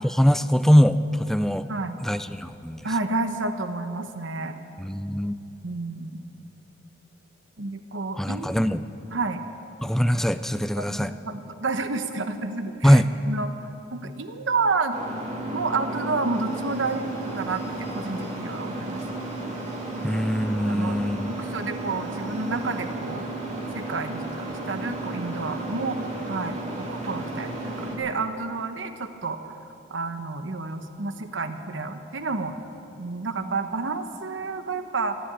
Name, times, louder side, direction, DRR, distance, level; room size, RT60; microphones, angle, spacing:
voice 1, 0.0-1.7 2.0-2.9 4.8-5.4 8.2-8.8 9.8-11.1 12.8-13.1 20.0-21.3, equal, ahead, 12 dB, 0.4 m, -22 dB
voice 2, 2.8-4.5 5.6-6.2 7.6-8.6 9.1-9.4 10.8-13.5 13.9-14.9 15.5-17.1 17.3-19.2 19.9-20.1 20.7-21.0 21.3-23.3 23.7-26.0 26.3-29.5 29.9-32.6 33.0-35.2, right 3 dB, 85° right, 8 dB, 1.0 m, -30 dB
sound 1, 14.9-28.0, right 2 dB, 35° right, 2.4 m, -33 dB
16.0 x 10.5 x 8.6 m, 2.9 s
head